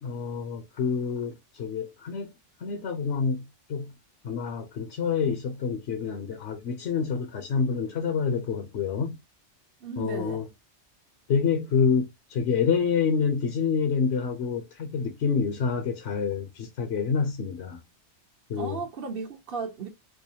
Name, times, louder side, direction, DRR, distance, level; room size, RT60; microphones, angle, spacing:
voice 1, 0.0-2.3 2.6-3.9 4.2-9.2 10.0-10.4 11.3-17.8 18.5-18.8, left 6 dB, 70° left, 1.0 m, -27 dB
voice 2, 9.8-10.4 18.6-19.9, right 5 dB, 55° right, 1.2 m, -35 dB
4.7 x 2.2 x 2.7 m
omnidirectional pair, 1.2 m